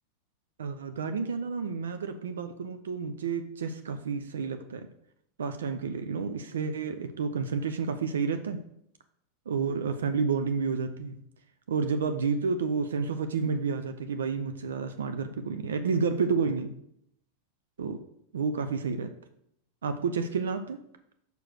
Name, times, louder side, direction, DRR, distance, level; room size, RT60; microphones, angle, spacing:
voice 1, 0.6-4.9 5.4-8.6 9.5-11.2 11.7-16.7 17.8-18.0 18.3-19.1 19.8-20.8, right 5 dB, 85° right, 8 dB, 0.5 m, -30 dB
5.1 x 4.8 x 6.2 m, 0.73 s
hypercardioid pair, 100°, 0 cm